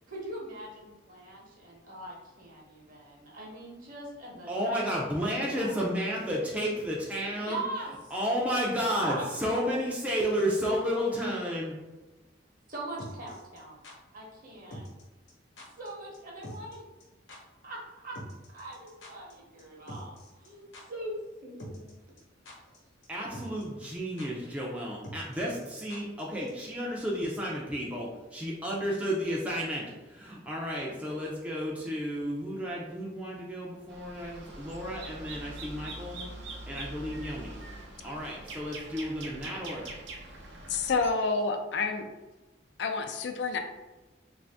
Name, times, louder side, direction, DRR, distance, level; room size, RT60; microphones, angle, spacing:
voice 1, 0.1-4.9 5.2-5.9 7.4-8.2 8.8-9.3 12.7-13.8 14.1-14.9 15.6-16.8 17.6-18.2 18.5-21.9, right 1 dB, 45° right, -3 dB, 1.0 m, -41 dB
voice 2, 4.5-7.6 8.1-11.8 23.1-36.3 36.7-37.6 38.0-39.9, equal, 5° right, -4 dB, 0.4 m, -32 dB
sound 1, 13.0-13.9 14.7-15.0 15.3-15.4 15.6-15.9 16.1-16.2 16.4-16.7 17.0-17.1 17.3-17.4 18.1-19.3 19.6-19.7 19.9-20.5 20.7-20.8 21.6-21.9 22.2-22.8 23.0-23.1 23.3-23.6 23.9-24.0 24.2-24.3 25.0-26.2 26.5-26.6, equal, 80° left, 1.0 m, -44 dB
sound 2, 33.9-41.1, right 2 dB, 65° right, 0.7 m, -43 dB
voice 3, 40.7-42.0 42.8-43.6, left 4 dB, 60° left, 5 dB, 0.3 m, -28 dB
3.2 x 2.6 x 3.4 m, 1.1 s
head